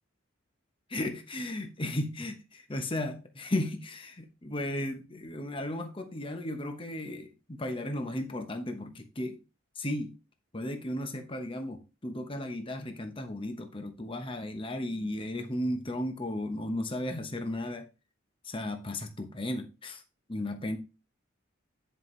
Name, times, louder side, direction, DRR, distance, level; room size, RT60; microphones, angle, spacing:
voice 1, 0.9-9.4 9.8-10.1 10.5-17.9 18.4-20.0 20.3-20.8, left 1 dB, 25° left, 1.0 m, -35 dB
10.5 x 5.6 x 3.2 m
head